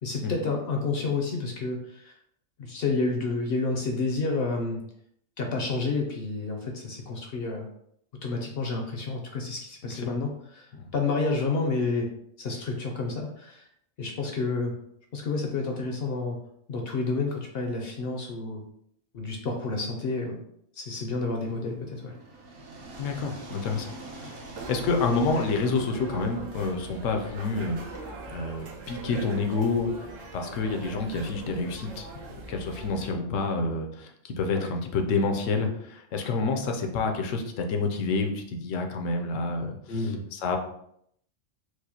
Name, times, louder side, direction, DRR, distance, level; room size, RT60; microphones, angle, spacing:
voice 1, 0.0-2.1 2.6-4.8 5.4-7.7 8.2-10.7 10.9-12.1 12.4-13.6 14.0-14.7 15.1-16.4 16.7-18.6 19.1-20.4 20.8-22.1 34.5-34.7 39.9-40.2, left 3 dB, 60° left, 2 dB, 0.7 m, -30 dB
voice 2, 9.8-10.2 10.7-10.9 22.9-24.4 24.7-27.8 28.3-30.1 30.3-39.8 40.3-40.6, left 3 dB, 80° left, 4 dB, 1.0 m, -28 dB
sound 1, 21.4-27.3, right 2 dB, 55° right, 0.8 m, -45 dB
sound 2, 24.6-33.1, right 3 dB, 85° right, 1.1 m, -41 dB
4.7 x 2.1 x 2.8 m, 0.71 s
omnidirectional pair, 1.3 m